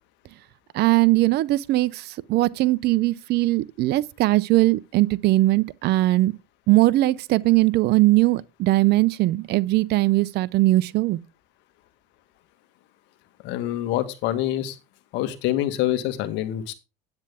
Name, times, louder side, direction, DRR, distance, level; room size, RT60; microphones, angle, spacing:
voice 1, 0.7-2.0 2.3-6.3 6.7-11.2, right 18 dB, 55° right, 0.6 m, -20 dB
voice 2, 13.4-14.8 15.1-16.7, left 13 dB, 65° left, 1.7 m, -26 dB
9.8 x 8.7 x 3.5 m
supercardioid pair, 90°, 19 cm